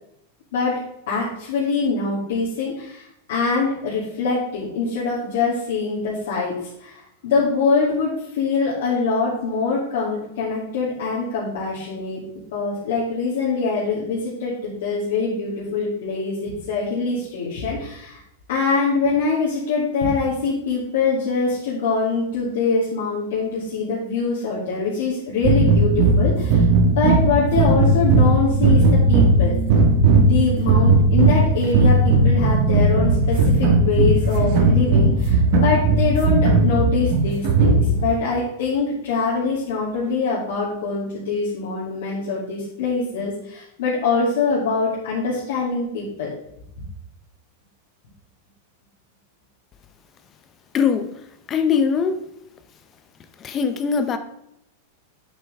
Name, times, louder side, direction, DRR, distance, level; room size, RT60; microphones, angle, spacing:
voice 1, 1.1-6.5 6.8-12.2 12.5-18.2 18.5-29.5 30.2-46.3, left 4 dB, 70° left, -8 dB, 2.6 m, -24 dB
sound 1, 25.4-38.1, right 2 dB, 45° right, 1.6 m, -17 dB
voice 2, 50.7-51.1 51.5-52.2 53.4-54.2, left 6 dB, 20° left, 9 dB, 0.6 m, -21 dB
8.1 x 7.9 x 3.5 m, 0.78 s
supercardioid pair, 160°, 0 cm